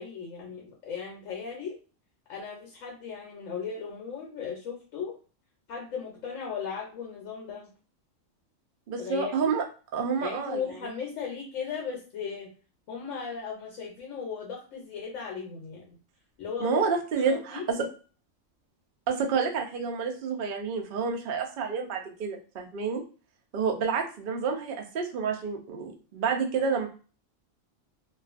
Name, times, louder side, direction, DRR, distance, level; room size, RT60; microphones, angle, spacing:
voice 1, 0.0-1.8 2.3-5.2 5.7-7.7 9.0-9.6 10.2-12.5 12.9-16.0 16.4-16.8 17.1-17.9, left 6 dB, 75° left, -1 dB, 1.0 m, -37 dB
voice 2, 8.9-9.6 9.9-10.6 16.6-17.8 19.1-23.0 23.5-26.9, right 5 dB, 60° right, 2 dB, 0.6 m, -29 dB
2.4 x 2.3 x 2.4 m, 0.36 s
omnidirectional pair, 1.4 m